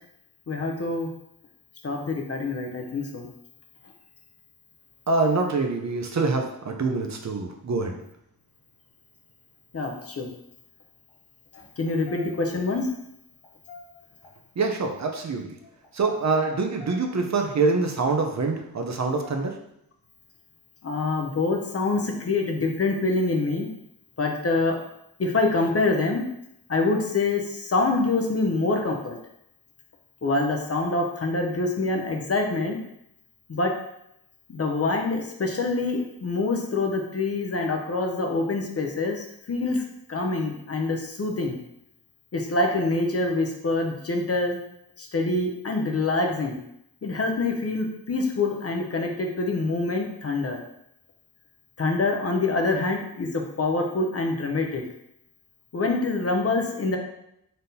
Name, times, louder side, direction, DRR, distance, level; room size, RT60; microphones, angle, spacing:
voice 1, 0.5-1.1 1.8-3.3 9.7-10.3 11.5-12.9 20.8-23.7 24.2-24.8 25.2-26.2 26.7-29.2 30.2-32.8 33.5-33.7 34.5-39.8 40.1-41.6 42.3-44.6 45.0-46.6 47.0-50.6 51.8-54.8 55.7-57.0, left 3 dB, 40° left, 2 dB, 0.7 m, -25 dB
voice 2, 5.1-8.0 14.6-15.5 15.9-19.6, right 3 dB, 50° right, 3 dB, 0.6 m, -25 dB
sound 1, 11.1-11.2 11.7-12.7 13.3-14.3 14.9-15.1 15.6-17.5 18.1-18.3 18.9-19.5, left 4 dB, 90° left, 1.0 m, -46 dB
4.1 x 3.6 x 2.7 m, 0.79 s
cardioid pair, 65°, 37 cm